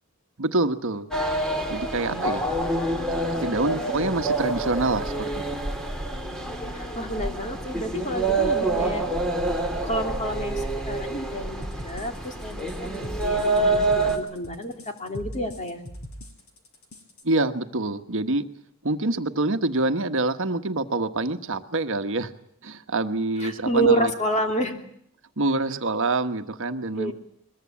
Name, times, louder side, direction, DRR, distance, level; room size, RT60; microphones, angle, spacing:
voice 1, 0.4-1.1 1.7-2.4 3.2-5.6 17.2-18.4 18.8-22.3 22.6-24.1 25.4-27.1, right 2 dB, 60° right, 7 dB, 1.3 m, -26 dB
sound 1, 1.1-14.2, right 2 dB, 5° left, 3.3 m, -27 dB
voice 2, 1.7-2.3 6.7-9.0 9.8-15.8 23.4-24.8 27.0-27.1, right 1 dB, 35° left, 4 dB, 3.1 m, -29 dB
sound 2, 11.6-17.2, equal, 85° left, 5.3 m, -40 dB
22.0 x 21.5 x 8.6 m, 0.69 s
head